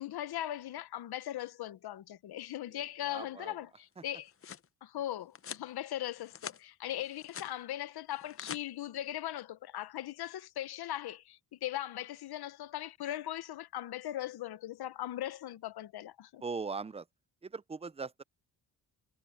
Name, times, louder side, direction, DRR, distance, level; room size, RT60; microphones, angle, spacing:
voice 1, 0.0-4.3 4.8-16.4, left 12 dB, 70° left, 0.8 m, -39 dB
voice 2, 2.7-3.6 4.0-4.1 16.4-17.1 17.4-18.2, right 4 dB, 15° right, 0.4 m, -40 dB
sound 1, 4.0-4.7 5.3-5.7 6.1-6.6 7.0-7.5 8.1-8.6, left 8 dB, 35° left, 0.6 m, -45 dB
wide cardioid pair, 135°, 39 cm